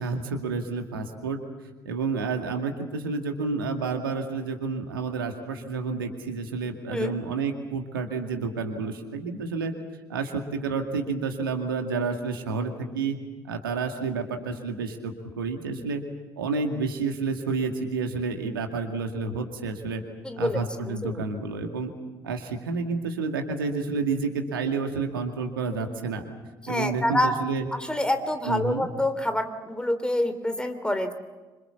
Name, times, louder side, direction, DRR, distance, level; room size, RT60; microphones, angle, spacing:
voice 1, 0.0-1.4 1.8-9.7 10.1-13.2 13.4-16.0 16.4-20.0 20.4-21.9 22.2-26.2 26.7-27.6 28.5-28.9, right 4 dB, 80° right, 4 dB, 2.3 m, -30 dB
voice 2, 20.2-20.6 20.8-21.2 26.6-27.3 27.7-31.1, left 1 dB, 10° left, 8 dB, 3.2 m, -27 dB
26.5 x 26.5 x 7.2 m, 1.2 s
figure-of-eight pair, 50°, 12 cm